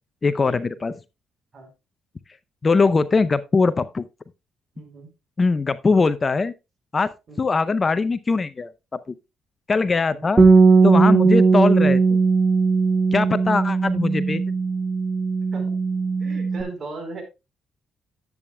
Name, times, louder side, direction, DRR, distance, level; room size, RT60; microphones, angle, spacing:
voice 1, 0.2-0.9 2.6-4.0 5.4-6.5 6.9-7.1 7.4-9.1 9.7-10.4 10.8-12.2 13.1-14.4, left 4 dB, 30° left, 0.5 m, -21 dB
voice 2, 4.8-5.1 7.3-7.4 10.1-10.2 15.5-15.7 16.2-17.2, right 3 dB, 45° right, 3.9 m, -37 dB
Bass guitar, 10.4-16.6, right 4 dB, 30° right, 1.8 m, -18 dB
10.5 x 8.5 x 2.2 m
cardioid pair, 90°, 0 cm